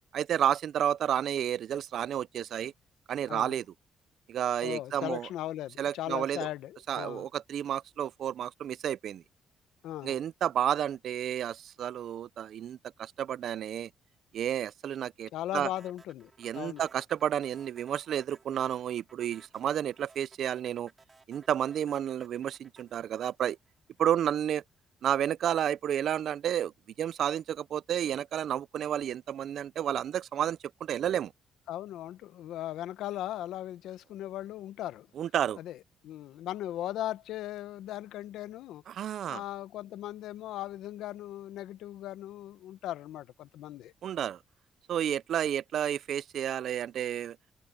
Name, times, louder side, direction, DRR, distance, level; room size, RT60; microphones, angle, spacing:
voice 1, 0.1-2.7 3.1-3.7 4.3-5.3 5.8-6.5 6.9-9.2 10.0-13.9 14.3-15.7 16.4-20.9 21.3-23.6 24.0-24.6 25.0-26.7 27.0-31.3 35.2-35.6 38.9-39.4 44.0-44.4 44.9-47.4, right 10 dB, 55° right, 0.3 m, -31 dB
voice 2, 3.3-3.6 4.6-7.3 9.8-10.2 15.3-16.9 31.7-35.1 35.6-35.8 36.0-38.8 39.2-43.9, left 13 dB, 85° left, 0.7 m, -38 dB
sound 1, 15.8-24.1, right 3 dB, 20° right, 4.5 m, -59 dB
cardioid pair, 175°, 0 cm